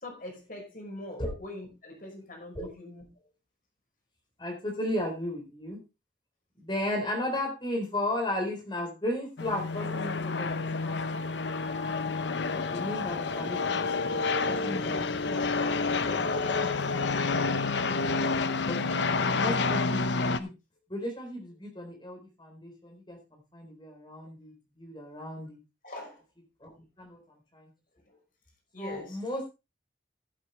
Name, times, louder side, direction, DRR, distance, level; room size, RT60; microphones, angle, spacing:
voice 1, 0.0-3.0 25.8-26.2 28.7-29.2, left 1 dB, 45° left, 5.3 m, -43 dB
voice 2, 4.4-5.8 6.6-11.0 12.7-17.4 18.7-18.8 19.3-20.5 20.9-25.6 26.6-26.7 27.0-27.2 27.5-27.7 28.8-29.5, left 1 dB, 25° left, 4.0 m, -35 dB
sound 1, 9.4-20.4, left 4 dB, 65° left, 0.8 m, -29 dB
16.0 x 8.3 x 3.3 m
head